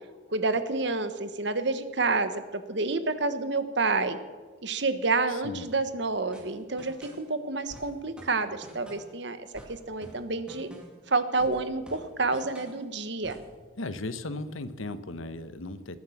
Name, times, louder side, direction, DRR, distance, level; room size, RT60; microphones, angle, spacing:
voice 1, 0.3-4.2 4.6-10.7 11.1-13.4, right 3 dB, 60° right, 11 dB, 1.2 m, -29 dB
voice 2, 5.3-5.7 13.8-16.0, left 2 dB, 80° left, 13 dB, 1.0 m, -36 dB
sound 1, 6.3-7.3 7.7-9.2 9.5-11.1 11.4-12.8 13.2-13.5, equal, 5° right, 2.5 m, -49 dB
20.0 x 9.5 x 7.2 m, 1.4 s
head